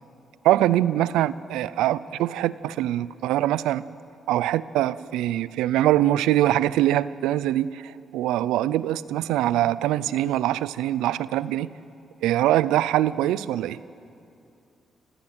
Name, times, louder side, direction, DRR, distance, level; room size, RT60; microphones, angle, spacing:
voice 1, 0.4-3.8 4.3-11.7 12.2-13.8, right 13 dB, 90° right, 18 dB, 0.5 m, -23 dB
26.0 x 16.5 x 8.9 m, 2.6 s
supercardioid pair, 50°, 0 cm